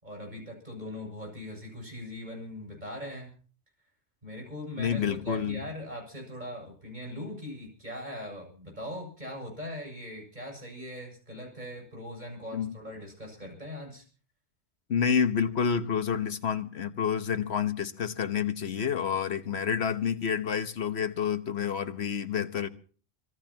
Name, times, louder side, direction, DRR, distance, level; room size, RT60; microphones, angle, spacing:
voice 1, 0.0-3.3 4.2-14.0, left 1 dB, 40° right, 7.7 m, -40 dB
voice 2, 4.8-5.6 12.5-12.7 14.9-22.7, left 7 dB, 70° left, 1.4 m, -29 dB
25.5 x 18.5 x 3.0 m
omnidirectional pair, 1.1 m